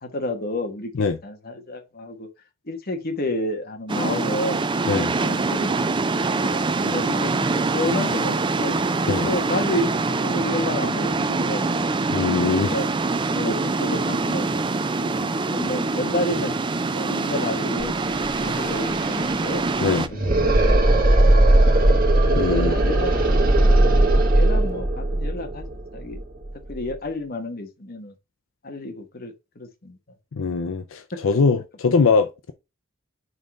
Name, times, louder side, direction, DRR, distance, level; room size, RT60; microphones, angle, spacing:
voice 1, 0.0-2.3 2.6-4.6 5.2-6.0 6.3-8.8 9.2-11.9 12.4-12.9 13.3-14.7 15.0-16.5 16.9-19.7 20.1-21.7 22.2-25.6 25.9-26.2 26.7-28.1 28.6-30.0 31.1-31.4, left 1 dB, 50° left, 1.3 m, -31 dB
sound 1, 3.9-20.1, right 3 dB, 25° right, 0.4 m, -24 dB
voice 2, 12.1-12.7 19.8-20.1 22.3-22.7 30.3-32.5, left 4 dB, 75° left, 0.5 m, -22 dB
sound 2, 17.8-17.9 18.1-26.9, right 1 dB, 45° right, 1.5 m, -19 dB
5.4 x 3.8 x 5.2 m
head